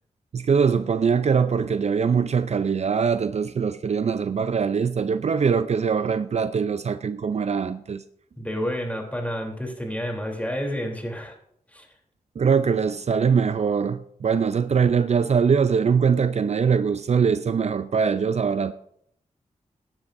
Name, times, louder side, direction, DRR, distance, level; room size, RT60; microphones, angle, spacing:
voice 1, 0.3-8.0 12.4-18.7, right 6 dB, 55° right, 0.5 m, -22 dB
voice 2, 8.4-11.3 11.7-11.9, equal, 10° left, 3.2 m, -30 dB
17.5 x 10.5 x 2.6 m
cardioid pair, 60°, 13 cm